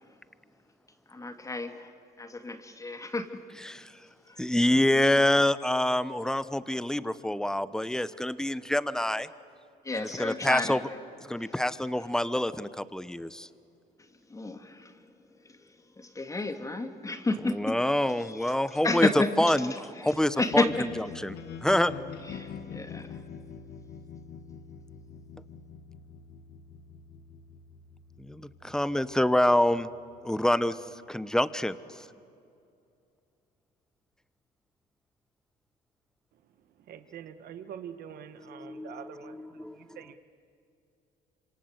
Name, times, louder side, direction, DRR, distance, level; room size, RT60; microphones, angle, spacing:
voice 1, 1.1-1.9 2.2-3.4 4.3-4.4 9.8-10.8 14.3-15.0 15.4-15.6 16.0-17.8 18.4-18.5 18.8-19.3 20.0-20.9 22.3-23.2, left 2 dB, 20° left, 6 dB, 2.1 m, -31 dB
voice 2, 3.6-4.0 4.4-9.3 9.9-10.8 11.2-13.5 17.5-19.1 19.4-21.9 28.2-29.9 30.2-30.8 31.1-32.1 38.4-40.0, left 1 dB, 5° left, 14 dB, 0.9 m, -27 dB
sound 1, 20.5-30.6, left 6 dB, 70° left, 1.9 m, -45 dB
voice 3, 36.9-39.3 40.0-40.2, right 9 dB, 65° right, 9 dB, 1.4 m, -44 dB
26.5 x 26.5 x 8.2 m, 2.5 s
cardioid pair, 110°, 17 cm